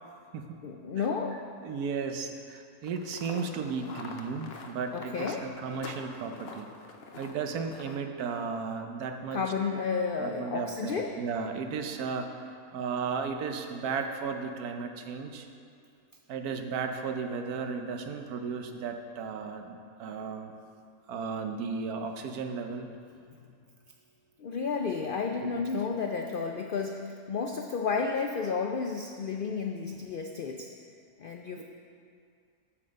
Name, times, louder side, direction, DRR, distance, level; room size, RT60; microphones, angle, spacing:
voice 1, 0.6-1.4 4.9-5.4 9.3-11.1 24.4-30.7 31.2-31.6, left 5 dB, 80° left, 3 dB, 0.4 m, -32 dB
voice 2, 1.6-5.4 5.6-6.7 7.1-9.4 10.2-12.3 12.7-15.5 16.3-20.5 21.1-22.9 25.4-25.5 31.6-31.7, right 5 dB, 80° right, 5 dB, 1.2 m, -34 dB
sound 1, 2.8-8.0, left 4 dB, 55° left, 0.8 m, -45 dB
8.5 x 7.5 x 5.3 m, 2.3 s
omnidirectional pair, 1.6 m